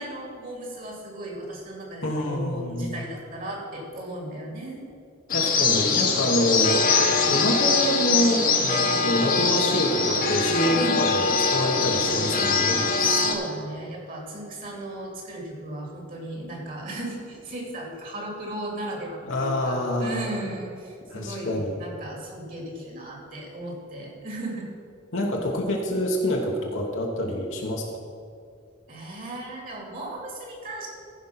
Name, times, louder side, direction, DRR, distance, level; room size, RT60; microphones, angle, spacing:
voice 1, 0.0-4.9 10.7-11.0 13.1-24.7 28.9-30.9, right 1 dB, 45° right, -1 dB, 2.4 m, -36 dB
voice 2, 2.0-3.0 5.3-6.9 7.2-12.8 19.3-20.5 21.1-21.8 25.1-27.9, equal, 65° left, 0 dB, 1.2 m, -26 dB
sound 1, 5.3-13.3, left 4 dB, 40° left, 1.2 m, -23 dB
15.0 x 5.2 x 5.8 m, 2.4 s
head